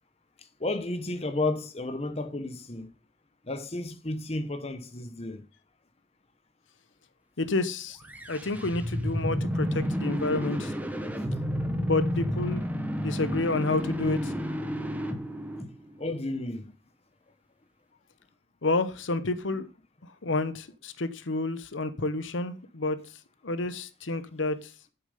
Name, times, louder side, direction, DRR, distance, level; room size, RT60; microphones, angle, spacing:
voice 1, 0.6-2.9 3.5-5.5 16.0-16.7, left 2 dB, 30° left, 1.0 m, -32 dB
voice 2, 7.4-8.0 8.3-10.7 11.8-12.6 13.0-14.3 18.6-19.7 20.2-23.0 23.4-24.6, left 2 dB, 75° left, 0.9 m, -29 dB
sound 1, 8.0-16.1, equal, 10° right, 1.1 m, -31 dB
8.5 x 7.1 x 5.4 m
head